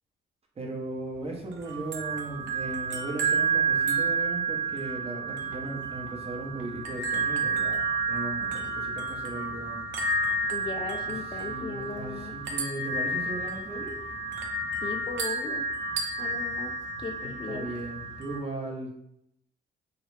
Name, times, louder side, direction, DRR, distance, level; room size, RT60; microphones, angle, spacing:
voice 1, 0.6-9.8 11.5-14.0 17.2-19.0, right 2 dB, 30° right, -1 dB, 0.8 m, -37 dB
sound 1, 1.5-18.4, right 4 dB, 70° right, 0.6 m, -30 dB
voice 2, 10.5-12.3 14.8-15.7 16.2-16.7 17.0-17.7, left 4 dB, 25° left, 5 dB, 0.3 m, -37 dB
3.1 x 2.4 x 3.1 m, 0.78 s
cardioid pair, 90°, 20 cm